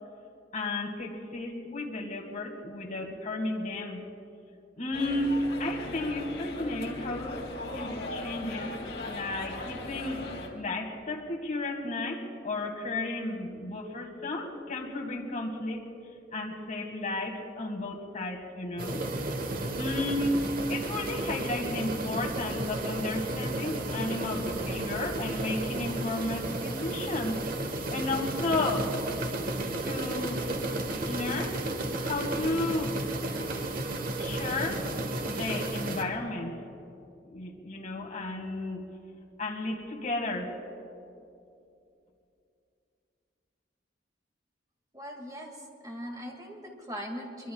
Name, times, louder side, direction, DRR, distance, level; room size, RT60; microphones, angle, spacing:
voice 1, 0.5-4.0 4.8-7.4 7.7-8.8 9.1-10.3 10.5-15.8 16.3-19.0 19.7-27.4 27.9-28.9 29.8-30.5 31.1-31.6 32.0-33.0 34.2-34.9 35.3-36.6 37.3-38.8 39.4-40.6, left 2 dB, 45° left, 1 dB, 1.9 m, -33 dB
sound 1, 4.9-10.5, left 2 dB, 85° left, 2.6 m, -38 dB
sound 2, 18.8-36.0, right 2 dB, 50° right, 1.2 m, -33 dB
voice 2, 44.9-47.5, equal, 20° right, 1 dB, 2.1 m, -40 dB
23.5 x 23.0 x 2.3 m, 2.6 s
head